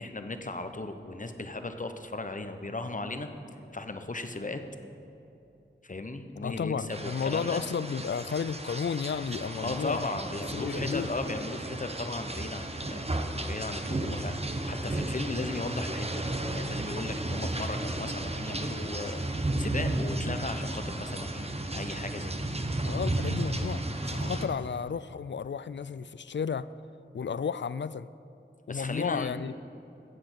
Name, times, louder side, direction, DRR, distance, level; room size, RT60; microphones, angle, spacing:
voice 1, 0.0-3.3 3.7-4.6 5.8-7.6 9.6-13.1 13.5-21.5 21.7-22.5 28.7-29.4, left 2 dB, 40° left, 0.9 m, -36 dB
voice 2, 6.4-10.0 10.5-11.1 22.8-26.7 27.1-28.1 28.7-29.5, left 6 dB, 65° left, 0.4 m, -33 dB
sound 1, 6.9-24.5, right 1 dB, 30° right, 1.0 m, -33 dB
15.5 x 7.7 x 6.0 m
wide cardioid pair, 45°, 20 cm